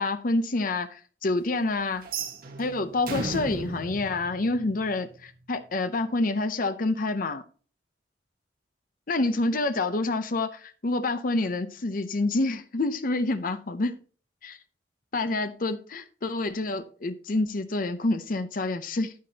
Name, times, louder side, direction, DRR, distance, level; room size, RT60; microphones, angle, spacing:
voice 1, 0.0-2.1 2.6-7.4 9.1-14.0 14.4-14.6 15.1-19.1, left 2 dB, 50° left, 0.7 m, -28 dB
sound 1, 2.0-5.1, right 3 dB, 50° right, 1.6 m, -35 dB
10.5 x 9.4 x 2.8 m
head